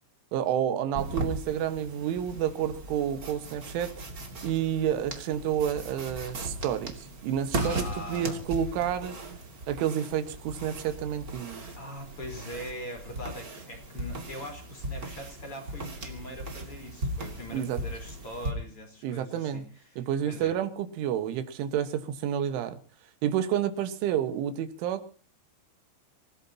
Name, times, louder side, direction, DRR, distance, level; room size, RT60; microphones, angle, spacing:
voice 1, 0.3-3.9 4.4-9.2 9.7-11.6 17.5-17.8 19.0-19.6 20.0-22.8 23.2-25.0, right 9 dB, 90° right, 9 dB, 3.9 m, -29 dB
sound 1, 0.9-18.5, right 1 dB, 30° right, 1.8 m, -38 dB
voice 2, 7.6-8.4 11.7-20.0 20.3-20.5, left 1 dB, 30° left, 3 dB, 4.7 m, -41 dB
26.5 x 16.5 x 2.9 m, 0.38 s
omnidirectional pair, 5.4 m